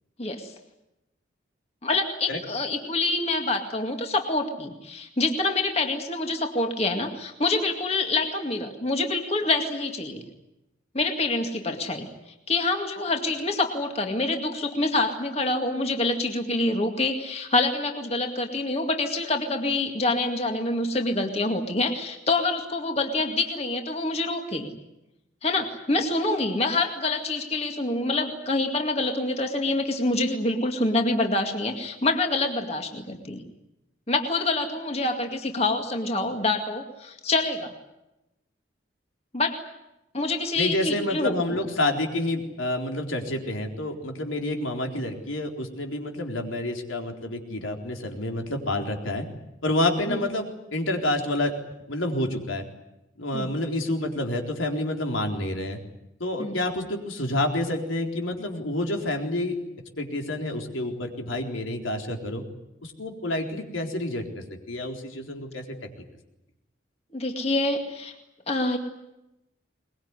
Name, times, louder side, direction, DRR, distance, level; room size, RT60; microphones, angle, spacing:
voice 1, 0.2-0.5 1.8-10.2 10.9-24.7 25.4-33.4 34.1-37.7 39.3-39.6 40.1-41.6 50.1-50.2 53.3-53.5 56.4-56.6 67.1-68.1 68.5-68.8, left 2 dB, 30° left, 4 dB, 2.2 m, -26 dB
voice 2, 40.6-49.2 49.6-50.5 50.7-51.5 51.9-52.6 53.2-55.8 56.2-59.6 60.0-62.4 62.8-65.8, left 1 dB, 85° left, 3 dB, 4.0 m, -28 dB
23.0 x 21.5 x 9.8 m, 0.92 s
head